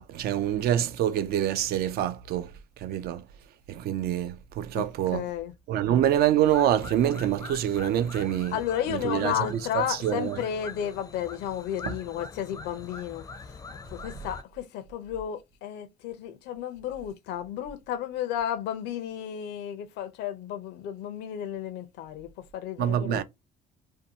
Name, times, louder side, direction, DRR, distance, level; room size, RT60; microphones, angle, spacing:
voice 1, 0.0-2.5 2.8-3.2 3.7-5.2 5.7-8.6 8.9-9.5 9.7-10.4 22.8-23.2, right 11 dB, 65° right, 0.4 m, -26 dB
voice 2, 5.1-5.5 8.5-13.2 13.9-23.2, left 10 dB, 85° left, 0.5 m, -33 dB
sound 1, 6.4-14.4, left 4 dB, 20° left, 0.4 m, -43 dB
2.6 x 2.2 x 2.7 m
cardioid pair, 110°, 17 cm